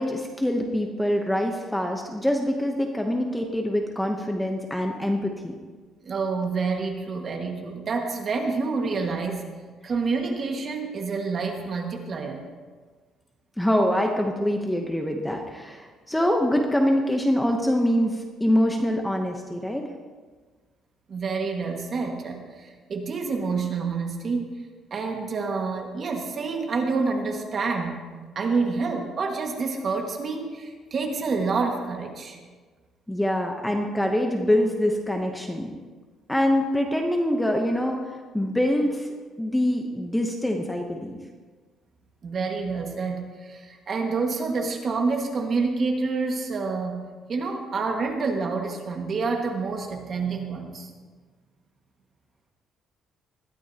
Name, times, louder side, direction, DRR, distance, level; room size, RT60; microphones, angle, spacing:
voice 1, 0.0-5.5 13.6-19.9 33.1-35.7 36.3-39.1 39.4-41.2, left 1 dB, 5° left, 3 dB, 0.8 m, -24 dB
voice 2, 6.0-9.4 9.8-12.4 21.1-24.5 24.9-28.0 28.3-32.4 42.2-47.0 47.3-50.9, right 4 dB, 35° right, 2 dB, 1.7 m, -28 dB
20.0 x 13.0 x 2.8 m, 1.4 s
cardioid pair, 165°, 0 cm